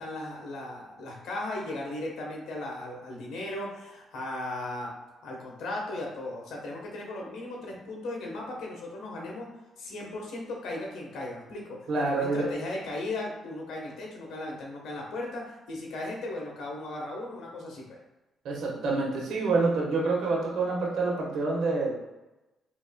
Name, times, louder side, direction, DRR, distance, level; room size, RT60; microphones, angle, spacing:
voice 1, 0.0-4.9 5.2-9.5 9.8-18.0 19.4-19.6, left 2 dB, 80° left, -1 dB, 1.1 m, -37 dB
voice 2, 11.9-12.5 18.4-21.9, right 3 dB, 75° right, -2 dB, 1.2 m, -27 dB
4.6 x 3.2 x 2.2 m, 1.0 s
cardioid pair, 90°, 0 cm